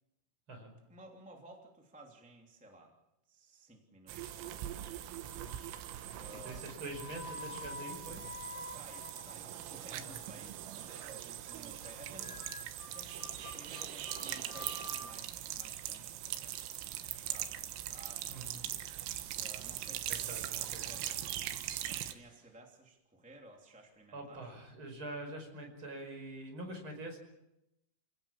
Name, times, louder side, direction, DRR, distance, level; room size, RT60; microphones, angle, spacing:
voice 1, 0.9-2.9 3.3-5.3 6.1-6.6 8.7-12.3 12.6-13.2 13.5-16.6 17.1-18.9 19.4-21.1 21.8-24.5, right 1 dB, 5° right, 0 dB, 1.5 m, -56 dB
sound 1, 4.1-22.1, right 12 dB, 85° right, 3.8 m, -41 dB
sound 2, 4.3-4.9 5.3-5.8 6.5-9.8 10.1-10.5 10.9-11.2 11.5-11.9 12.2-15.2, left 3 dB, 90° left, 6.7 m, -49 dB
sound 3, 4.3-15.2, right 5 dB, 50° right, 3.2 m, -57 dB
voice 2, 5.2-5.6 6.4-8.2 9.9-10.2 12.2-12.4 18.3-18.7 20.1-21.3 24.1-27.2, right 1 dB, 25° right, 3 dB, 5.6 m, -45 dB
29.0 x 17.5 x 7.4 m, 0.88 s
omnidirectional pair, 5.8 m